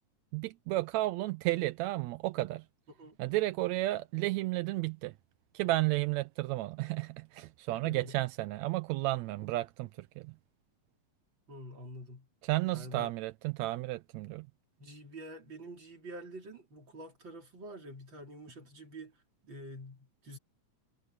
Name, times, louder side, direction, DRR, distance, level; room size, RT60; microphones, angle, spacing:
voice 1, 0.3-2.6 3.2-5.1 5.5-10.3 12.4-14.5, right 18 dB, 80° right, 1.8 m, -32 dB
voice 2, 7.7-8.2 11.5-12.3 12.7-13.1 14.8-19.2 19.4-20.4, right 1 dB, 35° right, 5.0 m, -47 dB
omnidirectional pair, 3.5 m